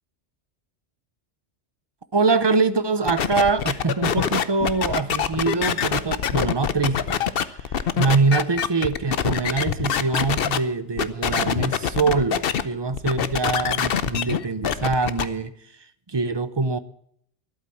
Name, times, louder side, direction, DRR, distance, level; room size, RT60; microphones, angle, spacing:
voice 1, 2.1-15.5 16.1-16.8, right 4 dB, 25° right, 12 dB, 0.7 m, -24 dB
sound 1, 3.1-10.6 11.0-12.6 12.9-15.2, left 8 dB, 60° left, 0.9 m, -24 dB
13.0 x 11.5 x 7.0 m, 0.69 s
omnidirectional pair, 1.2 m